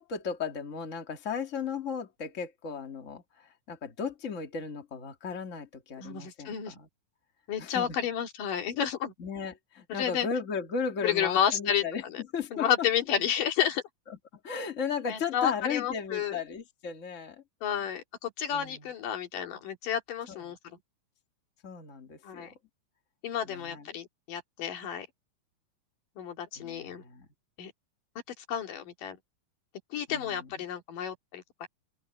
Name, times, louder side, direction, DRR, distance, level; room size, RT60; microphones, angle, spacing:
voice 1, 0.0-6.9 7.6-8.0 9.2-12.9 14.1-14.2 14.4-17.4 18.5-18.9 20.3-20.6 21.6-22.5 23.4-23.9 26.6-27.3 30.1-30.5, left 6 dB, 25° left, 2.1 m, -36 dB
voice 2, 6.0-6.8 7.5-9.1 9.9-10.3 11.0-12.2 12.5-13.8 15.1-16.4 17.6-20.8 22.2-22.5 23.2-25.1 26.2-27.0 27.6-27.7 28.4-29.2 29.9-31.7, left 9 dB, 90° left, 3.9 m, -31 dB
open air
omnidirectional pair, 3.7 m